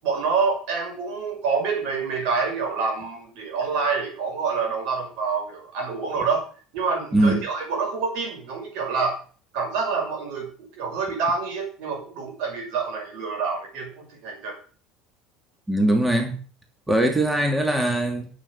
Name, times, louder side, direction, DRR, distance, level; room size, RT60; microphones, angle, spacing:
voice 1, 0.0-6.4 6.7-9.2 9.5-10.5 10.7-14.6, right 5 dB, 65° right, 6.3 m, -27 dB
voice 2, 15.7-16.4 16.9-18.3, right 1 dB, 10° right, 2.8 m, -21 dB
9.0 x 8.1 x 8.4 m
hypercardioid pair, 75°, 0 cm